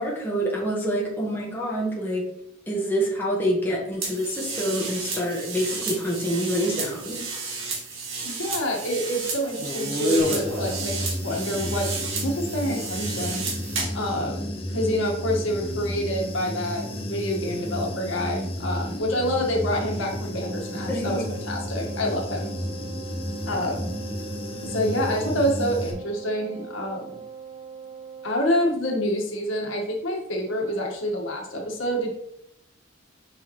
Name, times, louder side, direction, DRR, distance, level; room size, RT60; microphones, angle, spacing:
voice 1, 0.0-2.3 2.7-7.2 20.9-21.2, equal, 10° left, -4 dB, 1.6 m, -27 dB
sound 1, 4.0-14.0, right 2 dB, 80° right, 1.9 m, -30 dB
voice 2, 8.2-11.9 12.1-13.5 13.9-22.5 23.5-23.9 24.6-27.2 28.2-32.1, equal, 75° left, -1 dB, 1.8 m, -27 dB
Human voice / Buzz, 10.2-25.9, left 1 dB, 30° left, 1.1 m, -32 dB
Wind instrument woodwind instrument, 20.4-28.6, right 6 dB, 30° right, 0.6 m, -42 dB
6.8 x 5.7 x 3.2 m, 0.75 s
head